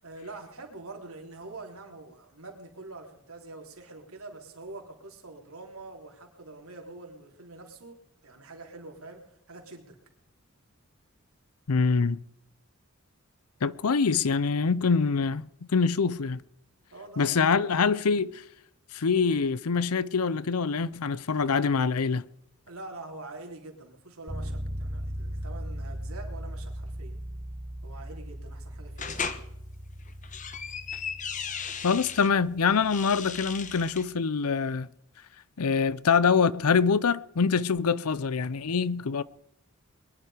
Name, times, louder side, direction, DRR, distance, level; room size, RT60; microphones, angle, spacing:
voice 1, 0.0-10.0 16.9-17.7 22.7-27.2 27.8-29.3, right 2 dB, 75° right, 3.5 m, -45 dB
voice 2, 11.7-12.2 13.6-16.4 17.2-18.4 18.9-22.2 31.8-34.9 35.6-39.2, left 5 dB, 85° left, 0.6 m, -25 dB
sound 1, 24.3-34.0, equal, 10° left, 2.6 m, -39 dB
sound 2, 29.0-29.4 30.1-32.3 32.8-34.0, left 6 dB, 35° left, 1.0 m, -36 dB
22.0 x 11.0 x 5.1 m
head